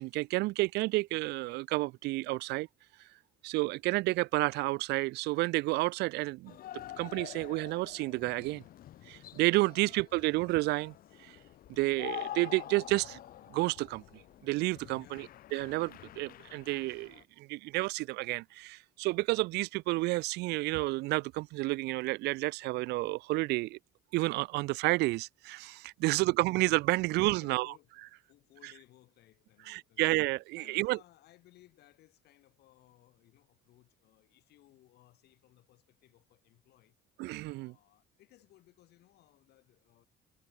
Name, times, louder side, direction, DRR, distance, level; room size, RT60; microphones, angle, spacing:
voice 1, 0.0-2.7 3.4-6.6 7.0-8.6 9.1-10.9 11.2-11.4 11.7-13.2 13.5-15.3 15.5-23.8 24.1-27.7 29.7-31.0 37.2-37.7, right 21 dB, 80° right, 0.4 m, -30 dB
sound 1, 6.5-17.2, left 12 dB, 60° left, 1.0 m, -47 dB
voice 2, 14.9-15.4 26.0-26.7 27.3-28.0 28.3-30.2 30.6-37.0 37.4-40.1, left 15 dB, 75° left, 6.1 m, -62 dB
cardioid pair, 110°, 17 cm